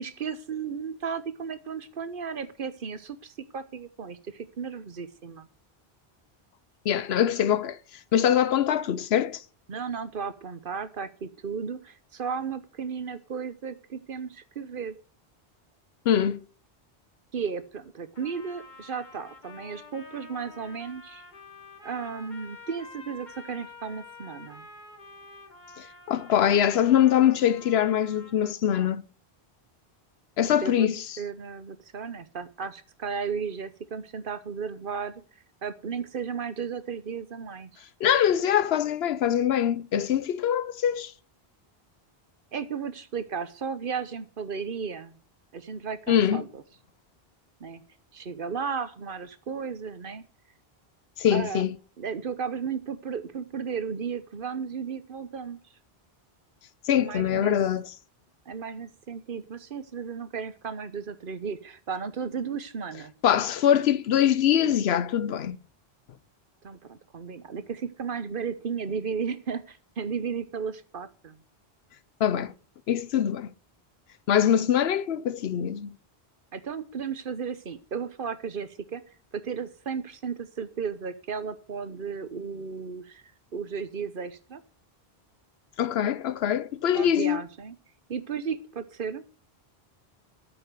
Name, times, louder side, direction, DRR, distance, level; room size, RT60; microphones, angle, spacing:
voice 1, 0.0-5.5 9.7-14.9 17.3-21.2 21.8-24.7 28.8-28.9 30.6-30.9 31.2-35.2 35.6-37.8 42.5-45.2 45.5-46.6 47.6-47.8 48.1-50.2 51.3-51.6 52.0-55.6 56.9-57.6 58.5-63.1 66.6-71.4 76.5-79.0 79.3-83.2 83.5-84.6 86.9-87.7 88.1-89.2, right 6 dB, 60° right, 1.1 m, -34 dB
voice 2, 6.8-7.8 8.1-9.4 16.1-16.4 25.8-29.0 30.4-31.0 38.0-41.1 46.1-46.4 51.2-51.7 56.9-57.9 63.2-65.6 72.2-72.5 72.9-73.5 74.3-75.9 85.8-87.4, left 10 dB, 85° left, 0.9 m, -23 dB
Trumpet, 18.1-28.6, left 3 dB, 50° left, 1.7 m, -48 dB
8.9 x 7.0 x 8.0 m
omnidirectional pair, 1.0 m